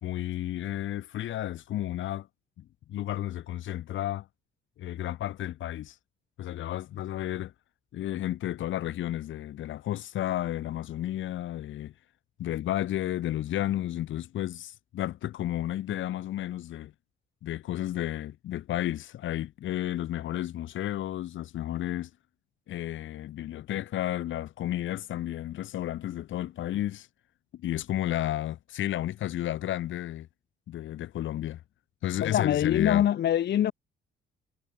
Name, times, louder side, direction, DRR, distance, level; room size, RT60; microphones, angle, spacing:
voice 1, 0.0-2.3 2.6-4.3 4.8-6.0 6.4-7.5 7.9-11.9 12.4-16.9 17.4-22.1 22.7-27.1 27.5-30.3 30.7-31.6 32.0-33.0, left 13 dB, 75° left, 2.4 m, -32 dB
voice 2, 32.2-33.7, left 10 dB, 55° left, 0.8 m, -24 dB
cardioid pair, 90°, 20 cm